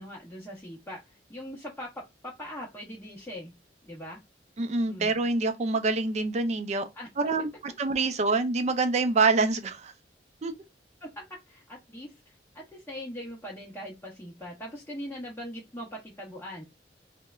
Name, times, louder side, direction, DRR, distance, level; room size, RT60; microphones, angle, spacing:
voice 1, 0.0-3.5 3.9-4.2 4.9-5.1 6.9-7.1 11.0-16.6, equal, 15° left, 0.6 m, -41 dB
voice 2, 4.6-6.9 7.2-9.9 10.4-10.5, right 3 dB, 40° right, 0.4 m, -26 dB
2.9 x 2.1 x 2.2 m
head